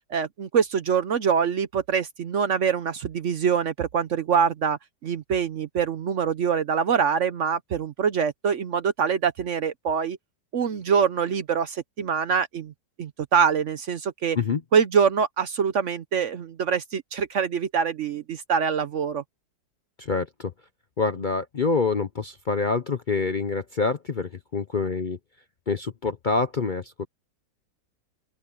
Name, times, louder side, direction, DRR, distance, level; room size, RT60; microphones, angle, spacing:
voice 1, 0.1-10.2 10.5-12.7 13.0-14.4 14.7-19.2, right 7 dB, 60° right, 0.9 m, -24 dB
voice 2, 20.0-20.5 21.0-25.2 25.7-27.1, left 4 dB, 40° left, 0.7 m, -26 dB
open air
omnidirectional pair, 1.7 m